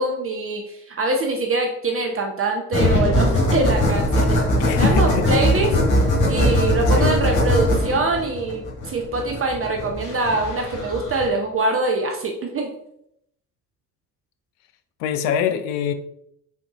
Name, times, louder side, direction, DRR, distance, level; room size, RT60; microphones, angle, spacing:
voice 1, 0.0-5.8 6.3-12.7, right 2 dB, 30° right, 2 dB, 0.7 m, -24 dB
sound 1, 2.7-11.3, left 1 dB, 45° left, 1.5 m, -20 dB
voice 2, 4.6-5.3 6.9-7.2 15.0-15.9, left 9 dB, 65° left, 9 dB, 0.5 m, -24 dB
3.9 x 3.5 x 2.8 m, 0.75 s
figure-of-eight pair, 45°, 43 cm